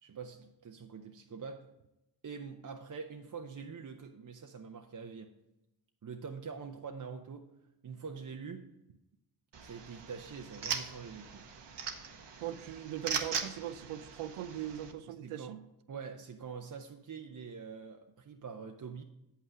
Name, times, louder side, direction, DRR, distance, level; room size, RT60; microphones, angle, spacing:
voice 1, 0.0-1.7 2.2-5.3 6.0-7.5 7.8-8.7 9.6-11.4 15.0-15.5 15.9-19.0, right 5 dB, 40° right, 4 dB, 0.7 m, -45 dB
sound 1, 9.5-14.9, right 6 dB, 60° right, 1.0 m, -40 dB
voice 2, 12.4-15.6, right 11 dB, 80° right, 14 dB, 0.6 m, -40 dB
7.5 x 5.6 x 4.8 m, 0.92 s
supercardioid pair, 40°, 49 cm